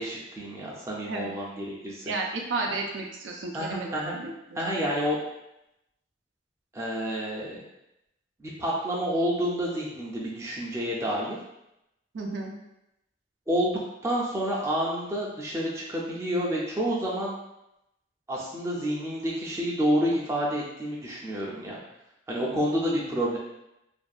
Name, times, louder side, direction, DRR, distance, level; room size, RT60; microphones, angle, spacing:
voice 1, 0.0-2.0 3.5-4.2 4.5-5.2 6.7-7.6 8.4-11.4 13.5-17.4 18.3-21.8 22.3-23.4, equal, 15° right, -5 dB, 0.4 m, -29 dB
voice 2, 2.1-4.6 12.1-12.5, right 3 dB, 75° right, 0 dB, 0.4 m, -33 dB
2.6 x 2.2 x 2.3 m, 0.87 s
head